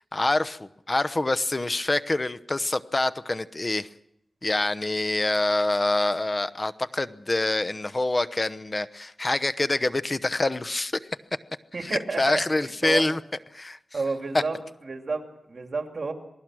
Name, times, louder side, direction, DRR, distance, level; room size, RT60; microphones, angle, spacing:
voice 1, 0.1-3.9 4.4-10.9 11.8-13.2 13.5-13.8, left 2 dB, 30° left, 14 dB, 0.9 m, -26 dB
voice 2, 11.7-13.0 13.9-16.1, right 4 dB, 55° right, 4 dB, 2.6 m, -31 dB
27.0 x 19.0 x 6.3 m, 0.81 s
wide cardioid pair, 70°, 0 cm